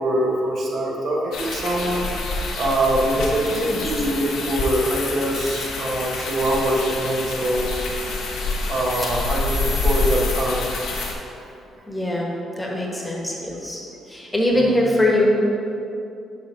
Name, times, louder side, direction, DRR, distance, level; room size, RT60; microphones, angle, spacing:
voice 1, 0.0-2.1 2.6-7.7 8.6-10.7 11.4-11.5 14.5-14.9, right 1 dB, 60° right, -2 dB, 1.2 m, -23 dB
sound 1, 1.3-11.1, left 3 dB, 80° left, 1.1 m, -27 dB
voice 2, 3.5-3.8 11.9-13.8 14.1-15.3, left 1 dB, 10° left, -2 dB, 1.3 m, -22 dB
sound 2, 3.5-4.0 4.9-5.1 5.4-5.5 6.4-6.6 7.3-7.4 8.8-10.7 10.9-11.1, right 1 dB, 20° right, 0.8 m, -35 dB
6.7 x 3.5 x 6.1 m, 2.7 s
cardioid pair, 90°, 0 cm